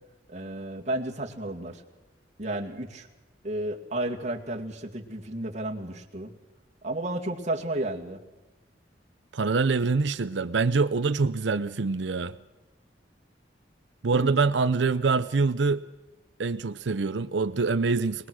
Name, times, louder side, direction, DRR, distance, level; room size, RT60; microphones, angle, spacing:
voice 1, 0.3-1.8 2.4-3.1 3.4-6.3 6.8-8.2 14.1-14.3, right 1 dB, 40° right, 2.3 m, -32 dB
voice 2, 9.3-12.3 14.0-15.8 16.4-18.3, right 4 dB, 75° right, 0.6 m, -25 dB
24.0 x 20.0 x 6.3 m
head